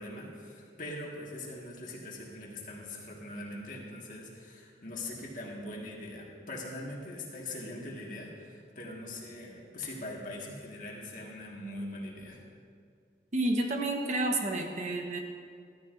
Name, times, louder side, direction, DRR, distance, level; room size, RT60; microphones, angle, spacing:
voice 1, 0.0-12.4, left 1 dB, 45° left, -2 dB, 1.7 m, -42 dB
voice 2, 13.3-15.2, right 2 dB, 40° right, 3 dB, 0.9 m, -30 dB
14.0 x 12.5 x 2.6 m, 2.2 s
head